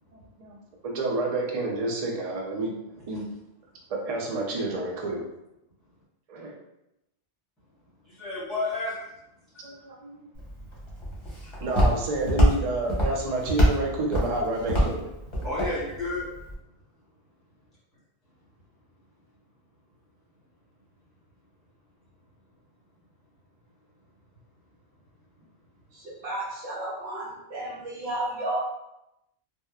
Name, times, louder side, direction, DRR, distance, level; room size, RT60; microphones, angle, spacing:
voice 1, 0.8-2.7 3.1-3.3 3.9-5.2 6.3-6.6 9.6-10.2 11.6-15.1, right 2 dB, 50° right, -1 dB, 0.4 m, -29 dB
voice 2, 8.0-9.0 9.5-9.6 11.4-11.5 15.4-16.3, left 2 dB, ahead, -9 dB, 1.0 m, -31 dB
Walk footsteps, 10.4-16.5, equal, 30° left, 0.7 m, -26 dB
voice 3, 25.9-28.6, right 1 dB, 75° right, -7 dB, 0.9 m, -33 dB
2.8 x 2.0 x 2.3 m, 0.87 s
omnidirectional pair, 1.1 m